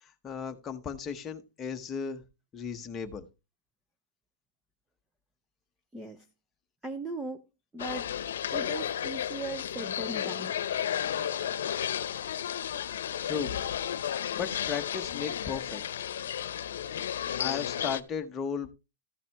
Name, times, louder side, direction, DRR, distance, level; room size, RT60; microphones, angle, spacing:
voice 1, 0.2-2.2 2.5-3.2 13.2-13.6 14.3-15.8 17.4-18.7, left 6 dB, 15° left, 0.9 m, -35 dB
voice 2, 5.9-6.3 6.8-7.5 7.7-8.1 8.5-10.5, right 2 dB, 5° right, 0.6 m, -38 dB
sound 1, 7.8-18.0, left 9 dB, 70° left, 0.8 m, -33 dB
14.5 x 5.8 x 3.4 m
supercardioid pair, 175°, 0 cm